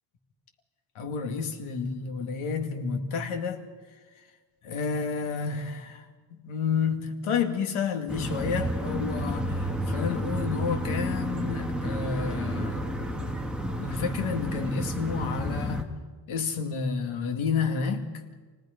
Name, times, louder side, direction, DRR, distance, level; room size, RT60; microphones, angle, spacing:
voice 1, 1.0-3.7 4.6-12.9 13.8-15.9 16.3-18.1, left 6 dB, 90° left, 2.4 m, -30 dB
sound 1, 8.1-15.8, equal, ahead, 1.7 m, -31 dB
28.5 x 18.5 x 5.2 m
cardioid pair, 150°, 47 cm